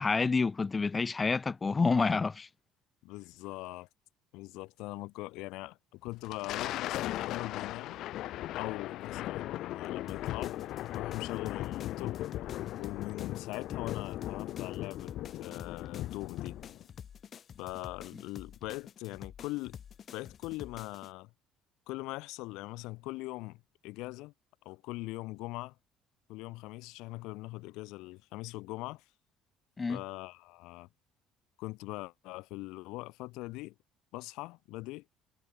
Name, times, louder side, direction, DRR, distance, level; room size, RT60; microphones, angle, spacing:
voice 1, 0.0-2.5 29.8-30.0, left 4 dB, 20° left, 0.6 m, -28 dB
voice 2, 3.0-3.9 4.3-8.0 8.5-10.6 10.9-12.2 12.8-15.1 15.4-16.6 17.6-19.8 20.1-21.3 21.9-24.3 24.6-25.8 26.3-29.0 29.9-30.9 31.6-33.7 34.1-35.0, left 21 dB, 80° left, 1.5 m, -41 dB
Thunder, 6.1-16.8, left 14 dB, 60° left, 2.0 m, -38 dB
sound 1, 10.1-21.1, left 8 dB, 35° left, 7.4 m, -49 dB
cardioid pair, 155°, 0 cm